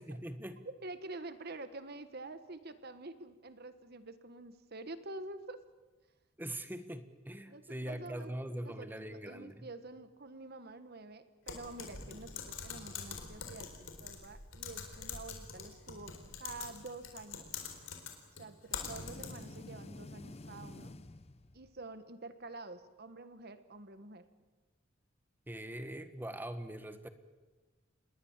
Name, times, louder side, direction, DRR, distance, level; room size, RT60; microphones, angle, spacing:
voice 1, 0.0-0.7 6.4-9.7 25.5-27.1, right 1 dB, 10° right, 10 dB, 1.4 m, -42 dB
voice 2, 0.6-5.6 7.5-17.5 18.4-20.9 21.5-24.3, right 2 dB, 50° right, 11 dB, 1.4 m, -48 dB
Typing, 11.5-19.6, left 6 dB, 70° left, 4.1 m, -45 dB
sound 1, 18.7-21.8, left 2 dB, 30° left, 0.7 m, -49 dB
27.5 x 21.0 x 7.3 m, 1.2 s
head